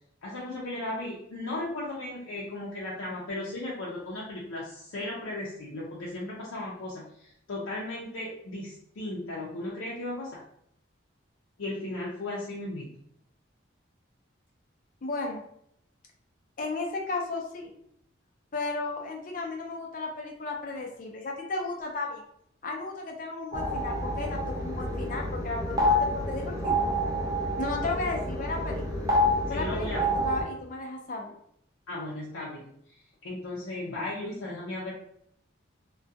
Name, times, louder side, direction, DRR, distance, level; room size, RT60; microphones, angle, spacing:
voice 1, 0.2-10.4 11.6-12.9 29.5-30.1 31.9-34.9, left 1 dB, 90° left, -6 dB, 0.5 m, -36 dB
voice 2, 15.0-15.4 16.6-17.8 18.5-22.2 22.6-26.9 27.6-29.0 29.5-29.9 30.2-31.3, left 3 dB, 40° left, 1 dB, 0.5 m, -34 dB
sound 1, 23.5-30.4, left 1 dB, 20° right, 0.4 m, -28 dB
2.3 x 2.2 x 2.6 m, 0.72 s
head